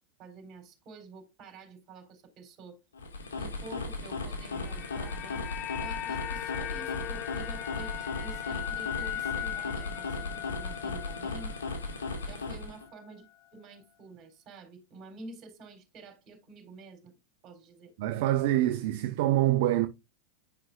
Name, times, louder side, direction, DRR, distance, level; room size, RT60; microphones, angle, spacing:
voice 1, 0.2-2.8 3.4-5.5 5.8-11.5 12.2-13.2 13.5-17.2 17.4-17.9, right 3 dB, 40° right, 3.8 m, -49 dB
sound 1, 2.9-12.9, left 3 dB, 90° left, 1.8 m, -36 dB
sound 2, 4.1-12.4 12.7-12.9, left 13 dB, 45° left, 0.5 m, -39 dB
voice 2, 18.0-19.9, right 14 dB, 65° right, 0.7 m, -25 dB
10.5 x 5.6 x 2.4 m
hypercardioid pair, 105°, 0 cm